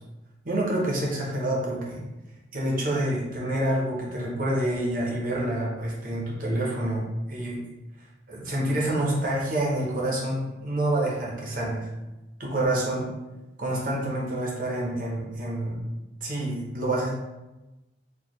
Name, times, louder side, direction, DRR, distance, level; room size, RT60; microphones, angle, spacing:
voice 1, 0.4-2.0 2.5-7.6 8.3-11.9 12.4-13.1 13.6-15.8 16.2-17.1, right 1 dB, 45° right, -4 dB, 0.9 m, -27 dB
4.3 x 2.4 x 3.1 m, 1.0 s
head